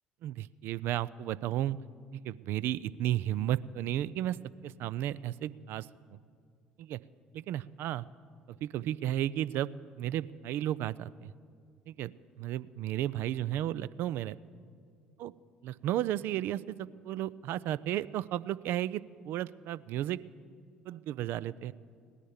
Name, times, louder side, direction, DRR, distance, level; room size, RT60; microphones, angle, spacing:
voice 1, 0.2-1.8 2.1-4.4 4.6-6.2 6.8-7.0 7.3-8.1 8.5-9.7 10.0-11.3 11.9-14.4 15.2-15.3 15.6-20.2 20.9-21.7, right 12 dB, 60° right, 18 dB, 0.4 m, -33 dB
17.5 x 10.0 x 7.1 m, 2.2 s
figure-of-eight pair, 55°, 4 cm